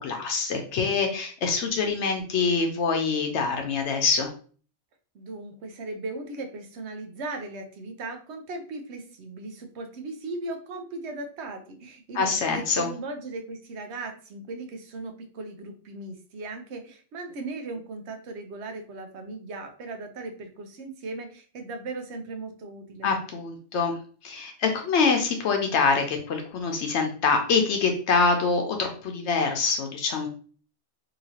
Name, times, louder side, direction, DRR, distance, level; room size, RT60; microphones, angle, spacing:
voice 1, 0.0-4.3 12.1-12.9 23.0-24.0 24.2-30.3, left 4 dB, 75° left, 3 dB, 0.9 m, -25 dB
voice 2, 5.1-23.1, right 2 dB, 70° right, 5 dB, 0.9 m, -37 dB
2.9 x 2.8 x 2.7 m, 0.42 s
omnidirectional pair, 1.2 m